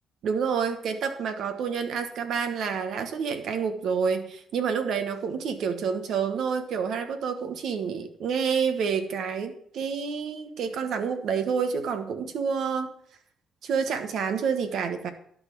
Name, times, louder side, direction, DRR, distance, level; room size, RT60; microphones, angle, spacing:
voice 1, 0.2-12.9 13.6-15.1, right 6 dB, 70° right, 8 dB, 1.2 m, -28 dB
11.5 x 4.2 x 7.0 m, 0.66 s
cardioid pair, 90°, 0 cm